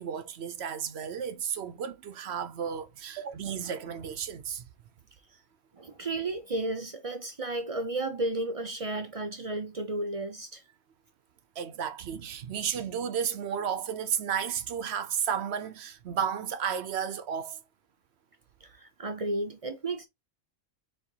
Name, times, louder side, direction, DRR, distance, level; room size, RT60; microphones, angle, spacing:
voice 1, 0.0-4.7 11.6-17.6, right 8 dB, 60° right, 0.8 m, -33 dB
voice 2, 5.7-10.6 18.6-20.1, right 2 dB, 45° right, 0.4 m, -33 dB
4.3 x 3.9 x 2.8 m
omnidirectional pair, 1.3 m